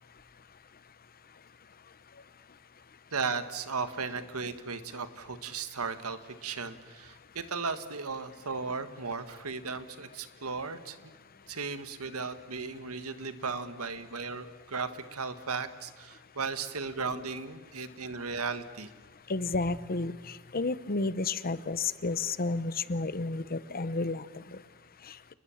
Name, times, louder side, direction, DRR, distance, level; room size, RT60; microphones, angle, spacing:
voice 1, 3.1-11.0 11.5-18.9, right 4 dB, 85° right, 11 dB, 1.7 m, -36 dB
voice 2, 19.3-24.2 24.5-24.6, left 3 dB, 45° left, 15 dB, 0.9 m, -31 dB
29.0 x 20.5 x 7.3 m, 1.3 s
head